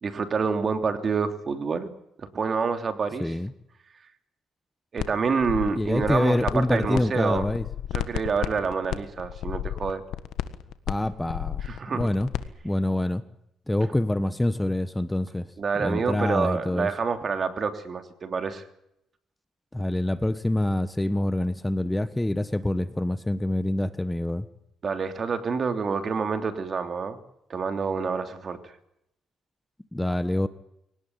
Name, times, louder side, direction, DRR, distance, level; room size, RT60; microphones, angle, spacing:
voice 1, 0.0-1.9 2.2-3.3 4.9-7.5 7.9-10.0 11.6-12.1 15.6-18.6 24.8-27.2 27.5-28.7, right 5 dB, 45° right, 8 dB, 3.0 m, -27 dB
voice 2, 3.2-3.5 5.8-7.6 10.9-11.6 11.9-12.3 12.6-13.2 13.7-15.5 15.8-16.9 19.7-24.5 29.9-30.5, left 1 dB, 10° left, 13 dB, 1.2 m, -26 dB
sound 1, 5.0-5.1 5.4-7.0 7.3-12.5, left 12 dB, 85° left, 1.5 m, -32 dB
23.5 x 18.0 x 9.5 m, 0.80 s
cardioid pair, 90°, 0 cm